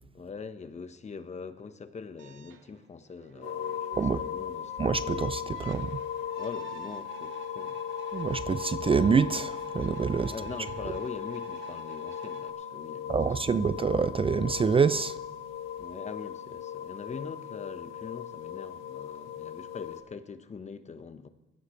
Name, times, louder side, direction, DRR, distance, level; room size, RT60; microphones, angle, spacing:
voice 1, 0.1-4.7 6.4-7.8 10.2-13.6 15.8-21.3, left 5 dB, 35° left, 1.1 m, -43 dB
sound 1, 2.2-12.5, right 9 dB, 75° right, 1.1 m, -48 dB
sound 2, 3.4-20.0, left 9 dB, 85° left, 1.7 m, -38 dB
voice 2, 4.8-6.0 8.1-10.3 13.1-15.2, right 5 dB, 30° right, 0.5 m, -26 dB
20.5 x 15.0 x 3.2 m
cardioid pair, 90°, 20 cm